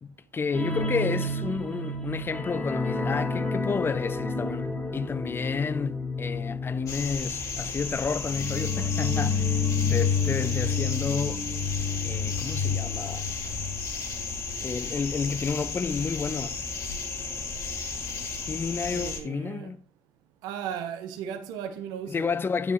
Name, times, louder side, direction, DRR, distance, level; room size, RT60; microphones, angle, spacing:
voice 1, 0.0-11.4 12.0-13.2 14.6-16.6 18.5-19.8 22.1-22.7, left 5 dB, 30° left, 0.6 m, -31 dB
sound 1, 0.5-13.8 14.1-14.3 14.7-14.8, left 4 dB, 15° left, 2.1 m, -30 dB
sound 2, 6.9-19.2, left 4 dB, 55° left, 2.7 m, -34 dB
voice 2, 18.9-19.7 20.4-22.3, right 8 dB, 70° right, 0.8 m, -36 dB
8.9 x 5.6 x 3.0 m
hypercardioid pair, 50°, 7 cm